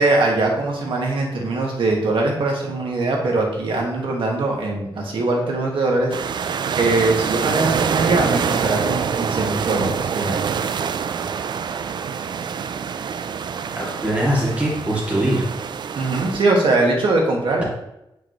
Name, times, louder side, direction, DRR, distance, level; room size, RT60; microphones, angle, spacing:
voice 1, 0.0-6.1 6.8-10.3 16.0-17.6, right 2 dB, 85° right, -1 dB, 1.8 m, -21 dB
sound 1, 6.1-16.4, right 6 dB, 60° right, 0.4 m, -25 dB
voice 2, 13.8-15.4, right 1 dB, 15° right, -5 dB, 2.4 m, -21 dB
8.9 x 4.9 x 3.1 m, 0.84 s
wide cardioid pair, 145°, 9 cm